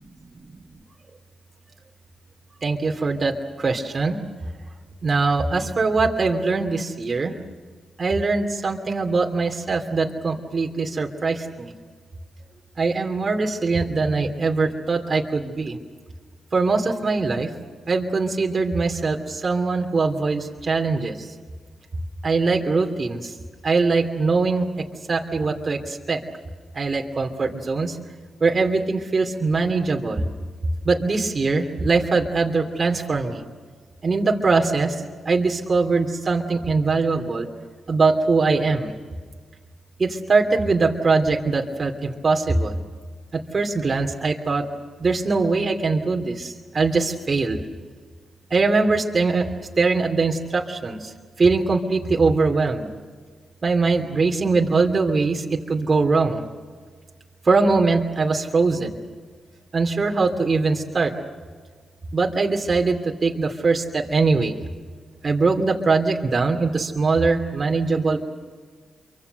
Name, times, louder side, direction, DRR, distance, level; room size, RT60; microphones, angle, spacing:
voice 1, 2.6-3.3 3.6-4.2 5.0-7.3 8.0-11.7 12.8-15.7 16.5-17.5 17.9-21.1 22.2-23.2 23.6-24.7 25.1-25.8 26.1-26.2 26.8-27.9 28.4-30.2 30.8-33.4 34.0-34.9 35.3-37.5 37.9-38.9 40.0-42.7 43.5-44.6 45.0-47.6 48.5-49.5 49.8-51.0 51.4-52.9 53.6-55.4 55.7-56.4 57.5-58.9 59.7-61.1 62.1-64.5 65.2-68.2, right 3 dB, 45° right, 2 dB, 2.8 m, -21 dB
27.5 x 24.5 x 6.7 m, 1.5 s
supercardioid pair, 45°, 0 cm